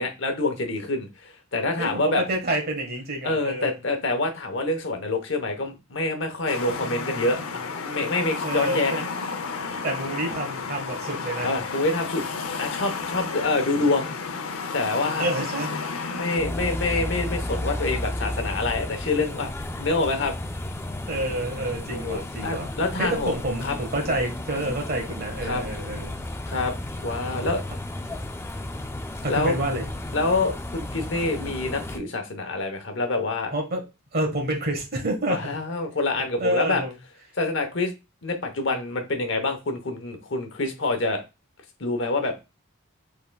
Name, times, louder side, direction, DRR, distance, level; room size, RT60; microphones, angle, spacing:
voice 1, 0.0-2.2 3.2-9.0 11.4-12.3 12.6-14.1 14.7-15.3 16.1-20.3 21.9-23.3 23.6-23.7 25.4-25.6 26.5-26.7 27.0-27.6 29.3-29.5 30.1-33.5 35.3-36.8 37.4-37.9 38.2-41.2 41.8-42.3, left 2 dB, 60° left, 6 dB, 0.9 m, -26 dB
voice 2, 1.8-3.8 8.4-9.0 9.8-11.5 15.2-15.8 21.1-22.7 23.0-26.1 29.2-29.9 33.5-33.8 34.1-35.6 36.4-36.9, right 1 dB, 45° right, 2 dB, 1.5 m, -28 dB
sound 1, 6.5-16.4, left 4 dB, 85° left, 0.7 m, -32 dB
sound 2, 16.4-32.0, left 1 dB, 10° left, 0.3 m, -33 dB
5.4 x 3.8 x 2.3 m, 0.26 s
head